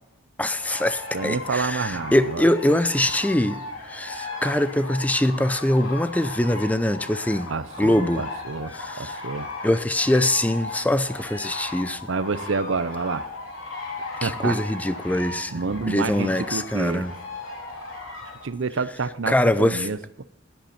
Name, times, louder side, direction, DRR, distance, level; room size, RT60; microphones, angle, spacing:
voice 1, 0.4-3.6 3.9-7.5 7.8-8.2 8.7-9.2 9.6-12.0 14.2-15.5 15.9-17.1 19.3-19.9, left 1 dB, 10° left, 0.5 m, -23 dB
sound 1, 0.6-18.5, left 2 dB, 80° left, 3.7 m, -36 dB
voice 2, 1.1-2.5 7.5-9.5 12.1-13.3 14.2-14.6 15.5-17.1 18.4-20.0, right 4 dB, 70° right, 0.7 m, -28 dB
15.5 x 10.5 x 4.3 m
head